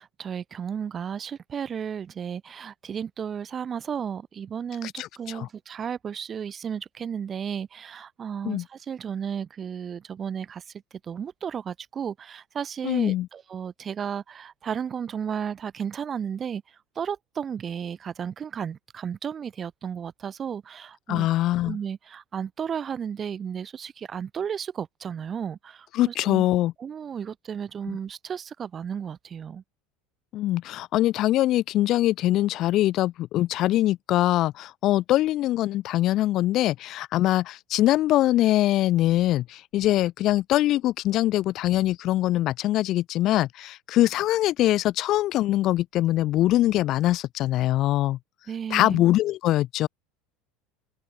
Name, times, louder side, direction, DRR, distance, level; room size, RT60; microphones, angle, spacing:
voice 1, 0.0-10.6 11.0-21.3 21.6-26.5 26.8-29.6 48.5-49.0, right 7 dB, 25° right, 0.9 m, -33 dB
voice 2, 5.0-5.5 8.4-8.6 12.8-13.3 21.1-21.8 25.9-26.7 27.9-28.0 30.3-48.2 48.7-49.9, left 15 dB, 40° left, 0.4 m, -23 dB
open air
cardioid pair, 155°, 0 cm